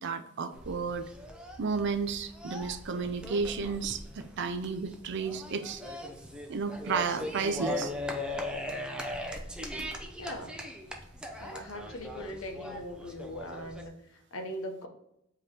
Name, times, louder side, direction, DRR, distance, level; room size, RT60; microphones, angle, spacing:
voice 1, 0.0-1.1 1.6-5.8 6.5-7.9, right 5 dB, 60° right, 8 dB, 0.5 m, -32 dB
sound 1, 0.5-13.9, left 1 dB, 5° right, 0.5 m, -39 dB
voice 2, 10.2-10.5 11.4-14.9, equal, 90° left, 4 dB, 0.8 m, -40 dB
4.9 x 3.0 x 2.9 m, 0.79 s
head